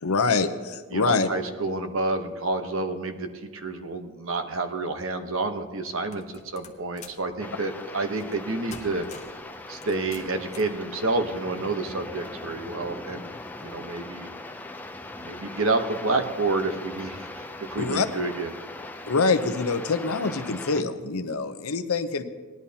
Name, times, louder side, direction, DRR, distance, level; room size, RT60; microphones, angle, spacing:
voice 1, 0.0-1.3 17.8-18.1 19.1-22.2, left 4 dB, 80° left, 9 dB, 0.7 m, -25 dB
voice 2, 0.9-9.1 9.7-13.3 13.6-14.3 15.2-18.5, right 3 dB, 65° right, 7 dB, 1.0 m, -29 dB
sound 1, 6.1-7.3 8.2-8.4 8.7-9.4 9.8-10.8, left 4 dB, 30° left, 1.0 m, -45 dB
sound 2, 7.4-20.8, left 2 dB, 10° left, 0.4 m, -40 dB
18.5 x 10.5 x 2.8 m, 1.4 s
head